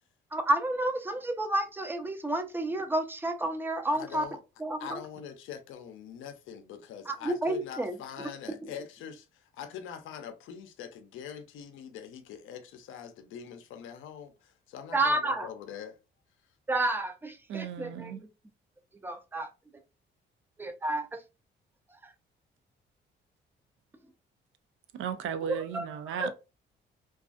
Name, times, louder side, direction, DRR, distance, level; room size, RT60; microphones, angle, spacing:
voice 1, 0.3-4.3 4.6-5.0 7.1-8.0 8.5-8.6 14.9-15.5 16.7-18.3 19.0-19.5 20.6-21.2 22.0-22.1 25.5-26.3, right 1 dB, 10° right, 0.4 m, -30 dB
voice 2, 3.9-4.4 4.8-16.0, left 8 dB, 80° left, 0.5 m, -43 dB
voice 3, 17.5-18.2 25.0-26.3, right 8 dB, 80° right, 0.4 m, -35 dB
2.5 x 2.3 x 2.3 m
cardioid pair, 90°, 20 cm